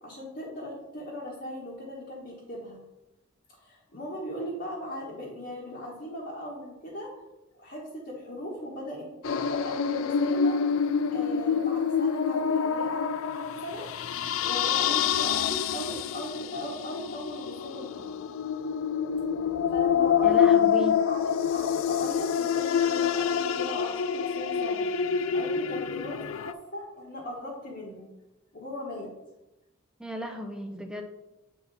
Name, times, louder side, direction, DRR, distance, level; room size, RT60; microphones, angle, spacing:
voice 1, 0.0-2.8 3.6-7.1 7.5-10.6 11.1-13.9 14.4-18.1 19.7-20.4 21.0-24.8 25.3-28.1 28.5-29.1, equal, 50° left, -6 dB, 1.4 m, -38 dB
sound 1, 9.2-26.5, left 7 dB, 70° left, 0.3 m, -27 dB
voice 2, 20.2-21.0 30.0-31.0, left 1 dB, 5° right, 4 dB, 0.6 m, -35 dB
8.3 x 4.2 x 4.1 m, 0.99 s
head